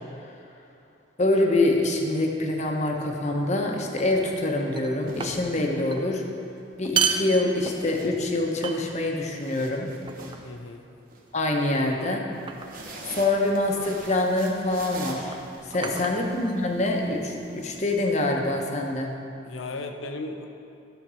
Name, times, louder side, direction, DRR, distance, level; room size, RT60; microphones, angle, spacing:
voice 1, 1.2-6.2 6.8-9.9 11.3-12.2 13.0-15.4 15.7-19.1, left 2 dB, 35° left, 1 dB, 0.9 m, -25 dB
sound 1, 2.9-3.2 4.0-4.4 4.7-5.6 5.9-6.1 6.7-8.1 8.6-9.2 10.1-10.5 11.5-11.8 12.5-12.9 14.0-14.2 15.2-16.9, right 6 dB, 25° right, 0.4 m, -32 dB
sound 2, 3.7-3.9 4.8-6.0 7.5-8.7 9.1-11.2 12.3-18.0, right 2 dB, 45° right, 1.1 m, -43 dB
voice 2, 10.4-10.9 11.7-12.2 15.8-16.2 19.4-20.5, left 2 dB, 85° left, 5 dB, 0.8 m, -37 dB
12.5 x 4.5 x 6.3 m, 2.6 s
head